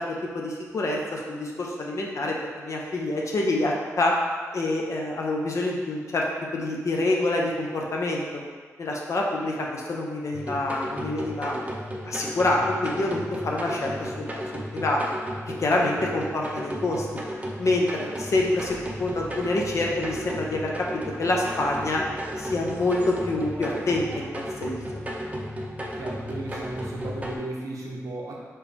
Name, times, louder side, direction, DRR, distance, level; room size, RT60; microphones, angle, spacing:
voice 1, 0.0-4.2 4.5-6.2 6.5-8.4 8.8-11.7 12.0-14.4 14.7-15.0 15.5-17.1 17.6-20.9 21.2-22.0 22.4-24.8, left 2 dB, 60° left, -2 dB, 0.7 m, -27 dB
sound 1, 10.3-27.4, equal, 25° right, 0.6 m, -34 dB
voice 2, 26.0-28.3, right 2 dB, 80° right, -2 dB, 0.8 m, -35 dB
4.5 x 3.1 x 3.3 m, 1.5 s
cardioid pair, 75°, 6 cm